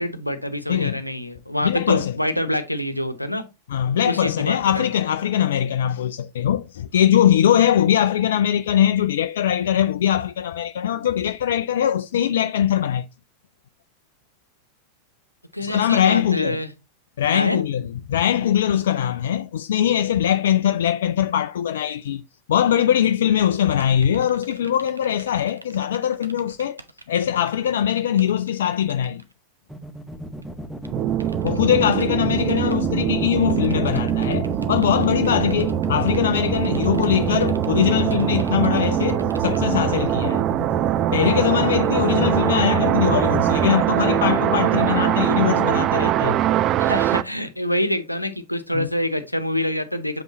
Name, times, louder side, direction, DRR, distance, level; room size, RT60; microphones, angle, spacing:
voice 1, 0.0-3.4 4.0-4.9 15.5-16.7 17.3-17.6 31.8-32.6 46.8-50.2, left 1 dB, 90° left, 0.9 m, -26 dB
voice 2, 0.7-1.0 1.6-2.2 3.7-13.1 15.6-16.6 17.2-22.2 22.5-26.8 27.1-29.2 31.4-40.4 41.1-46.4 48.7-48.9, left 10 dB, 60° left, 0.4 m, -21 dB
sound 1, 23.6-29.3 30.4-30.5 30.8-30.9 31.2-32.8 33.4-39.6, right 2 dB, 80° right, 0.8 m, -44 dB
sound 2, 29.7-43.7, right 1 dB, ahead, 1.0 m, -30 dB
sound 3, 30.9-47.2, right 13 dB, 35° right, 0.4 m, -23 dB
7.7 x 5.3 x 2.8 m
figure-of-eight pair, 90°, 0 cm